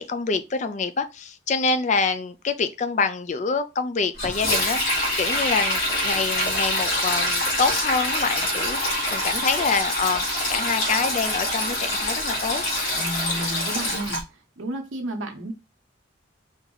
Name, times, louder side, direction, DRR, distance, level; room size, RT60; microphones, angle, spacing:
voice 1, 0.0-12.6, left 4 dB, 35° left, 0.4 m, -26 dB
Sink (filling or washing), 4.2-14.2, left 1 dB, 75° left, 2.3 m, -25 dB
voice 2, 12.9-15.5, right 1 dB, 80° right, 1.1 m, -32 dB
4.4 x 2.9 x 3.9 m
head